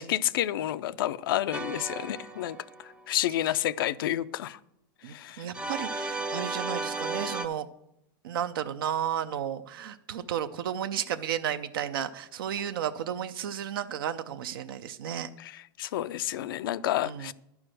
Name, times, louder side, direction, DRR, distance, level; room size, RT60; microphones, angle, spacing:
voice 1, 0.0-4.6 5.0-5.5 15.4-17.3, left 13 dB, 80° left, 0.4 m, -30 dB
sound 1, 1.5-3.0 5.5-7.5, right 2 dB, 10° right, 0.5 m, -34 dB
voice 2, 5.0-7.7 8.2-15.3 17.0-17.3, right 9 dB, 85° right, 0.6 m, -33 dB
10.5 x 4.7 x 7.6 m
supercardioid pair, 140°, 12 cm